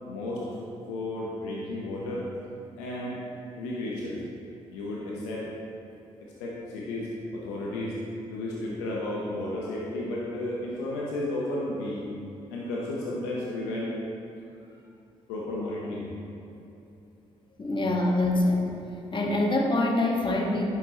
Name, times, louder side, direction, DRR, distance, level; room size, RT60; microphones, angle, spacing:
voice 1, 0.1-0.4 0.9-2.2 2.8-3.2 3.6-4.2 4.7-5.5 6.4-7.9 8.3-12.0 12.5-13.9 15.3-16.1, left 1 dB, 85° left, -4 dB, 1.1 m, -33 dB
voice 2, 17.6-18.7 19.1-20.6, left 2 dB, 35° left, 0 dB, 1.7 m, -25 dB
10.5 x 8.5 x 3.1 m, 2.7 s
hypercardioid pair, 40°, 15 cm